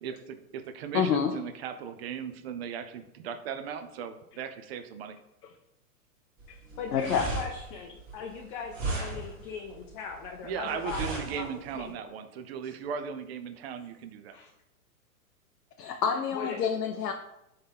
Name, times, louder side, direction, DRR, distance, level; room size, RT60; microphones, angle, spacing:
voice 1, 0.0-5.2 10.4-14.4, right 7 dB, 45° right, 9 dB, 0.5 m, -37 dB
voice 2, 0.9-1.3 6.5-6.6 6.9-7.3 15.8-17.1, left 7 dB, 90° left, 5 dB, 0.6 m, -27 dB
sound 1, 6.4-11.9, right 2 dB, 25° right, 1.5 m, -36 dB
voice 3, 6.8-12.1 14.3-14.5 16.3-16.6, left 6 dB, 35° left, 0 dB, 0.5 m, -39 dB
4.3 x 3.6 x 3.3 m, 0.87 s
hypercardioid pair, 125°, 46 cm